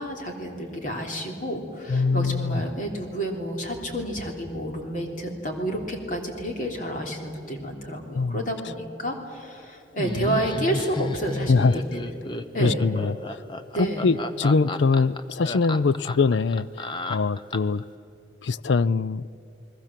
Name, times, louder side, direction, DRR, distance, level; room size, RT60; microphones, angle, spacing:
voice 1, 0.0-11.8 12.5-12.8 13.7-14.1, right 1 dB, 45° left, 3.4 m, -30 dB
voice 2, 1.9-2.6 8.1-8.4 11.5-11.8 12.6-13.4 13.8-17.8 18.4-19.3, left 4 dB, 75° left, 0.5 m, -23 dB
Laughter, 10.0-17.8, left 2 dB, 25° left, 0.8 m, -32 dB
30.0 x 21.0 x 7.5 m
head